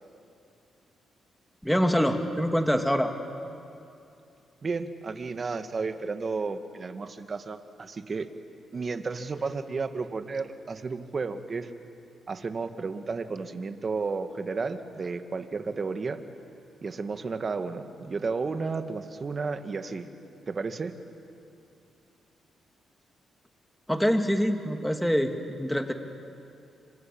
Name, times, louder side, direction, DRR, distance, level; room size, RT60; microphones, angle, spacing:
voice 1, 1.6-3.1 23.9-25.9, equal, 5° left, 5 dB, 2.6 m, -25 dB
voice 2, 4.6-8.3 8.7-11.7 12.3-16.2 16.8-20.1 20.5-20.9, right 4 dB, 45° right, 9 dB, 1.8 m, -32 dB
26.5 x 26.0 x 8.7 m, 2.6 s
cardioid pair, 65°, 0 cm